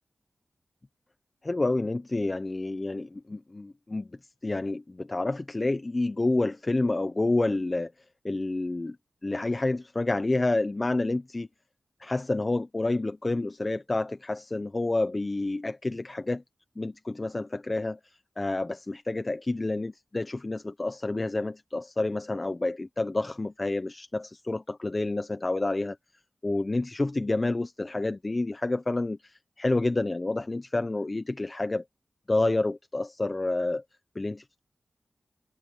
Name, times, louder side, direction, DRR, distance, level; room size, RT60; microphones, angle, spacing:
voice 1, 1.4-4.1 4.4-7.9 8.2-9.0 9.2-11.5 12.0-16.4 16.8-26.0 26.4-31.8 32.3-33.8 34.2-34.6, left 2 dB, 30° left, 0.7 m, -29 dB
wide cardioid pair, 75°, 0 cm